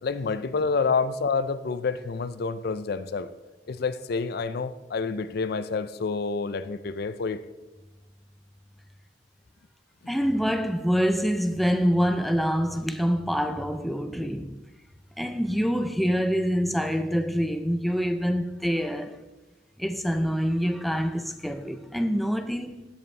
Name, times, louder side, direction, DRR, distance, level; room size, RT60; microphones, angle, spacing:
voice 1, 0.0-3.3 3.7-7.4 10.0-10.2, left 4 dB, 55° left, 0.5 m, -28 dB
voice 2, 10.1-14.5 15.2-19.2 19.8-22.9, equal, ahead, 0.5 m, -26 dB
16.0 x 8.0 x 3.3 m
head